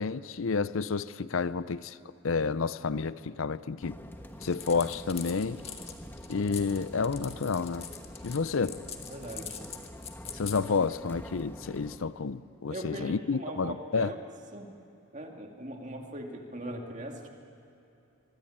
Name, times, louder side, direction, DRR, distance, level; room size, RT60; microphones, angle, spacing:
voice 1, 0.0-2.0 2.2-4.0 4.4-5.6 6.3-7.8 8.2-8.8 10.3-14.1, left 5 dB, 70° left, 0.6 m, -30 dB
sound 1, 3.8-12.0, equal, 10° left, 1.3 m, -46 dB
sound 2, 4.4-10.6, left 8 dB, 30° left, 1.8 m, -42 dB
voice 2, 9.1-9.6 12.7-14.2 14.5-14.7 15.1-17.3, right 1 dB, 35° right, 2.5 m, -40 dB
25.5 x 23.0 x 8.7 m
head